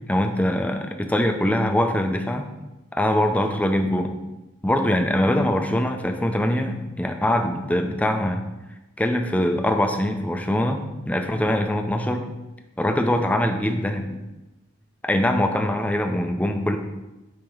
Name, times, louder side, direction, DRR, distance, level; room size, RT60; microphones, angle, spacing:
voice 1, 0.1-2.5 2.9-4.1 4.6-8.4 9.0-12.2 12.8-14.2 15.0-16.8, left 1 dB, 5° left, 5 dB, 0.5 m, -23 dB
8.7 x 2.9 x 5.3 m, 1.0 s
head